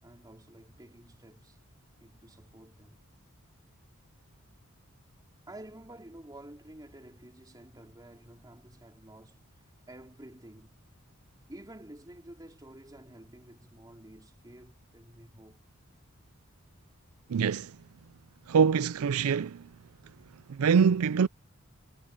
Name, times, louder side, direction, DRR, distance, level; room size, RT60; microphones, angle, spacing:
voice 1, 0.0-1.6 2.0-3.0 5.5-9.4 9.9-10.8 11.5-15.6, right 1 dB, 20° right, 3.2 m, -50 dB
voice 2, 17.3-17.7 18.5-19.6 20.5-21.3, right 6 dB, 80° right, 0.4 m, -24 dB
head